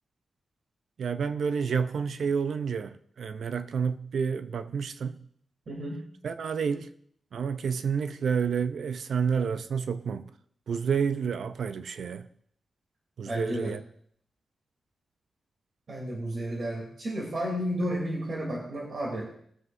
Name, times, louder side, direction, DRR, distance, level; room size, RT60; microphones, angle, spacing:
voice 1, 1.0-5.2 6.2-6.9 7.3-10.2 10.7-12.3 13.2-13.8, right 6 dB, 75° right, 0.6 m, -29 dB
voice 2, 5.7-6.0 13.3-13.7 15.9-19.3, equal, 50° right, 3.2 m, -32 dB
21.0 x 7.7 x 2.7 m
wide cardioid pair, 100°, 0 cm